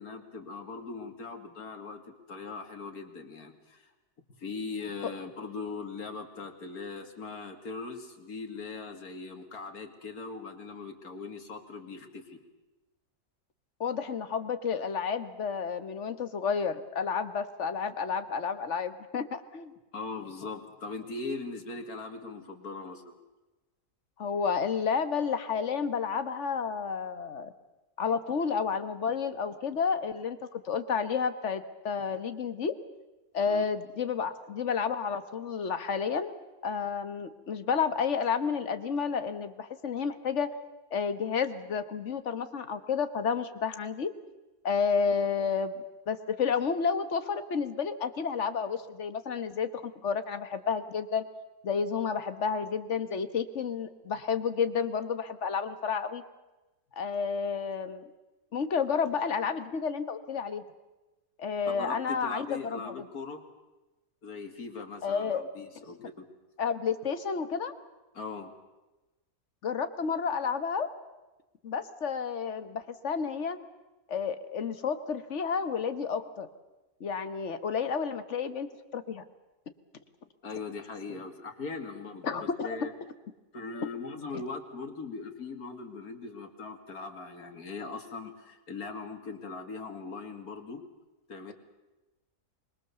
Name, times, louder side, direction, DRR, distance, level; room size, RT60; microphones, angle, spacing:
voice 1, 0.0-3.9 4.4-12.4 19.9-23.1 33.5-33.6 61.7-63.5 64.2-66.3 68.1-68.5 80.4-82.9 83.5-90.8 91.3-91.5, left 4 dB, 90° left, 5 dB, 2.7 m, -40 dB
voice 2, 13.8-19.7 24.2-27.5 28.0-32.8 33.3-40.5 40.9-44.1 44.6-45.7 46.1-51.2 51.6-56.2 57.0-58.1 58.5-60.6 61.4-62.9 65.0-65.4 66.6-67.7 69.6-70.9 71.6-73.6 74.1-76.5 77.0-78.7 78.9-79.2 82.2-82.8 84.3-84.4, left 6 dB, 55° left, 10 dB, 1.6 m, -31 dB
26.0 x 21.5 x 7.0 m, 1.1 s
omnidirectional pair, 1.5 m